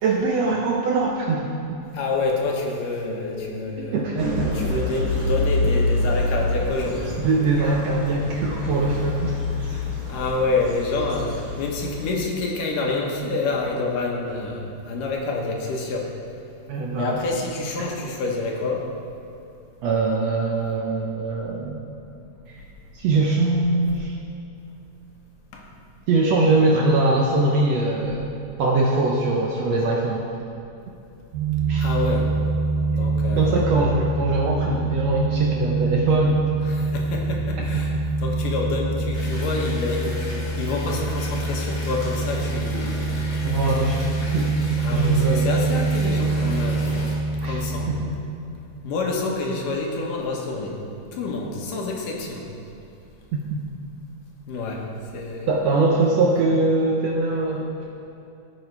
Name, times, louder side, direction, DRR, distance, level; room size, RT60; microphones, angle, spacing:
voice 1, 0.0-1.8 3.8-4.5 7.2-9.4 16.7-17.2 19.8-21.9 22.5-22.6 22.9-24.1 26.1-28.3 28.6-30.2 31.7-31.9 33.3-36.4 37.6-38.1 43.4-45.5 47.4-47.6 47.9-48.2 53.3-53.6 55.5-57.7, right 2 dB, 70° right, -1 dB, 1.7 m, -22 dB
voice 2, 1.9-4.1 4.5-7.3 9.7-9.8 10.1-16.1 17.0-18.9 25.5-25.6 31.8-32.3 32.9-33.6 36.6-37.9 38.2-40.2 40.6-43.0 44.8-47.1 47.4-47.9 48.8-50.8 51.2-52.4 54.5-54.9 55.1-55.5, left 3 dB, 75° left, -1 dB, 2.9 m, -27 dB
sound 1, 4.2-12.2, left 2 dB, 35° right, 1.5 m, -27 dB
sound 2, 31.3-48.0, right 3 dB, 90° right, 2.7 m, -25 dB
sound 3, 39.1-47.1, left 2 dB, 45° left, 2.5 m, -37 dB
17.0 x 7.1 x 4.7 m, 2.7 s
omnidirectional pair, 3.9 m